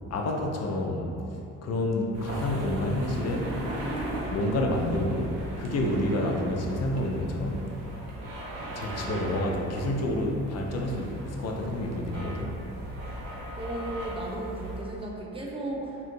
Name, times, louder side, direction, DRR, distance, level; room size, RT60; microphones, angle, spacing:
voice 1, 0.1-1.1 1.6-3.6 4.3-7.6 8.7-12.6, left 1 dB, 45° left, 1 dB, 0.5 m, -29 dB
sound 1, 2.1-14.8, right 1 dB, 85° right, 0.5 m, -37 dB
voice 2, 13.6-16.1, right 1 dB, 15° right, -2 dB, 0.5 m, -35 dB
2.9 x 2.4 x 2.6 m, 2.7 s
hypercardioid pair, 50°, 38 cm